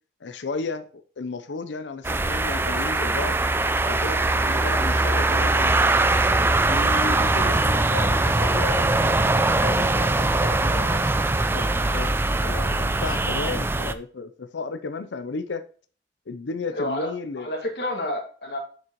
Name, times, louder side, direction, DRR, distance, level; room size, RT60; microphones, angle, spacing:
voice 1, 0.2-3.4 3.8-5.7 6.7-11.2 11.5-12.1 12.4-15.7 16.3-17.5, left 4 dB, 80° left, 0.6 m, -34 dB
sound 1, 2.0-13.9, right 2 dB, 10° right, 0.3 m, -22 dB
voice 2, 16.7-17.1 17.4-18.6, left 1 dB, 65° left, 2.0 m, -29 dB
7.2 x 6.3 x 3.0 m
head